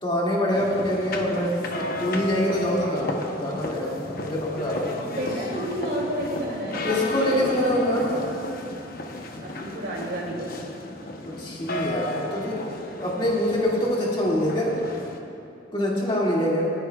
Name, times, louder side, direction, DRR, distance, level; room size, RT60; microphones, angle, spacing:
voice 1, 0.0-5.0 6.8-8.3 11.3-12.6 13.0-14.7 15.7-16.7, left 1 dB, 30° left, -5 dB, 2.2 m, -25 dB
sound 1, 0.5-15.2, left 1 dB, 55° left, 0.9 m, -34 dB
voice 2, 5.0-8.1 8.5-8.7 9.4-10.5, equal, 60° right, -3 dB, 2.6 m, -31 dB
26.5 x 9.5 x 2.3 m, 2.8 s
head